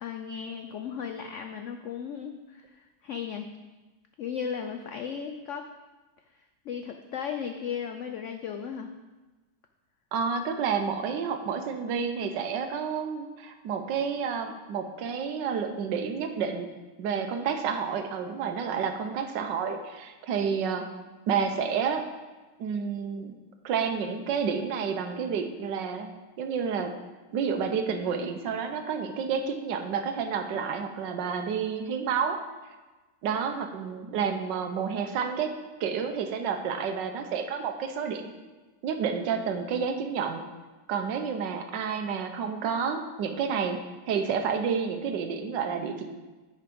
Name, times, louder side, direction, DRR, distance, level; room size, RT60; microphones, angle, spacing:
voice 1, 0.0-3.5 4.2-5.7 6.3-8.9, left 7 dB, 80° left, 5 dB, 0.6 m, -36 dB
voice 2, 10.1-16.7 17.0-20.8 21.3-22.0 22.6-23.3 23.6-26.1 26.4-26.9 27.3-32.4 33.2-35.5 35.8-38.4 38.8-40.4 40.9-43.8 44.1-46.0, right 6 dB, 80° right, 6 dB, 1.5 m, -30 dB
9.5 x 5.7 x 5.3 m, 1.2 s
omnidirectional pair, 1.9 m